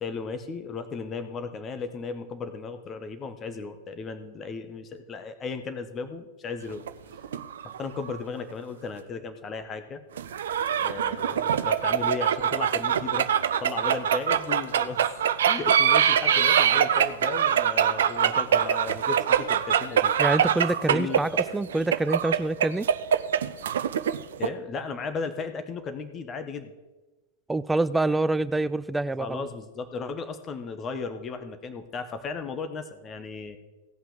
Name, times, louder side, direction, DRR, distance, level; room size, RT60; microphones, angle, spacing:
voice 1, 0.0-6.9 7.6-10.0 10.8-13.3 13.6-15.1 15.5-20.1 20.9-21.3 24.4-26.7 29.2-33.6, left 4 dB, 25° left, 8 dB, 1.2 m, -35 dB
sound 1, 6.7-8.2 8.5-8.6 10.2-24.5, right 9 dB, 60° right, 0.5 m, -24 dB
voice 2, 20.2-22.9 27.5-29.4, right 2 dB, 5° right, 16 dB, 0.3 m, -26 dB
16.0 x 5.8 x 7.3 m, 1.1 s
figure-of-eight pair, 90°, 0 cm